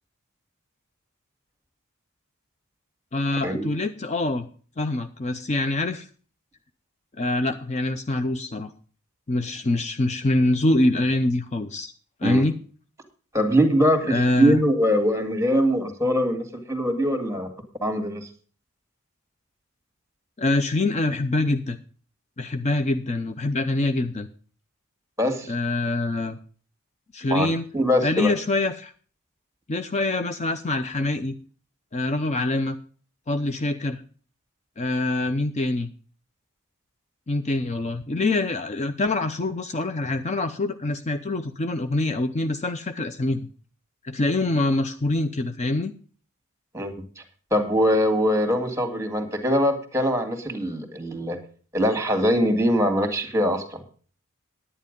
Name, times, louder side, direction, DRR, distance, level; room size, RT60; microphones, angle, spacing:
voice 1, 3.1-4.5 4.8-6.1 7.2-8.7 9.3-11.9 12.2-12.5 14.1-14.6 20.4-21.8 22.4-24.3 25.5-26.4 27.1-27.6 28.0-28.9 29.7-31.4 31.9-32.8 33.3-34.0 34.8-35.9 37.3-43.5 44.0-45.9, left 2 dB, 30° left, 9 dB, 0.6 m, -25 dB
voice 2, 13.3-17.5 17.8-18.3 25.2-25.5 27.3-27.5 27.7-28.3 46.7-46.9 47.5-51.4 51.7-53.8, equal, 15° right, 7 dB, 2.0 m, -22 dB
10.0 x 9.9 x 5.2 m, 0.41 s
head